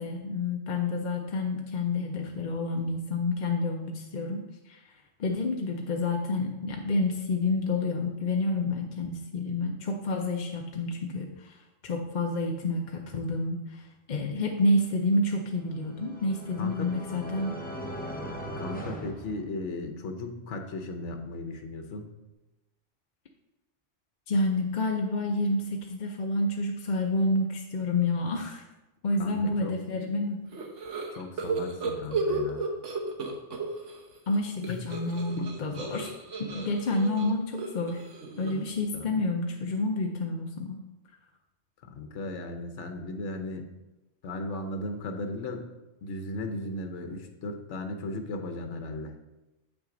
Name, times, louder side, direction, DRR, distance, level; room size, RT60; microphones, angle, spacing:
voice 1, 0.0-4.9 5.2-17.6 24.3-28.6 29.0-30.4 34.3-36.1 36.4-38.0 38.4-40.8, left 2 dB, 50° left, 2 dB, 0.6 m, -29 dB
sound 1, 15.5-20.1, equal, 10° left, 0.8 m, -39 dB
voice 2, 16.6-16.9 18.6-22.1 29.2-29.7 31.2-32.7 34.7-34.8 35.4-35.5 38.9-39.1 41.8-43.7 44.2-45.7 46.0-49.1, left 2 dB, 75° left, 6 dB, 1.1 m, -36 dB
sound 2, 30.5-34.0 34.3-38.8, right 4 dB, 75° right, 1.4 m, -34 dB
8.1 x 6.1 x 3.8 m, 1.0 s
omnidirectional pair, 1.3 m